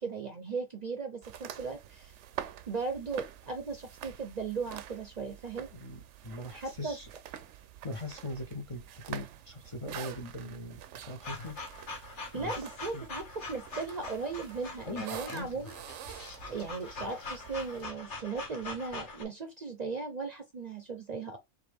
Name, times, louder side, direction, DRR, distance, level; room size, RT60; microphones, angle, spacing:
voice 1, 0.0-2.1 2.7-5.7 6.5-7.0 12.3-15.7 16.5-21.4, right 4 dB, 45° right, 0.6 m, -37 dB
sound 1, 1.2-17.8, right 10 dB, 80° right, 0.9 m, -47 dB
voice 2, 5.7-7.1 7.8-11.9 12.3-12.6 12.9-13.0 14.9-15.5, left 1 dB, 35° left, 0.6 m, -41 dB
sound 2, 11.2-19.2, left 3 dB, 75° left, 1.6 m, -43 dB
4.8 x 3.2 x 3.4 m
omnidirectional pair, 1.2 m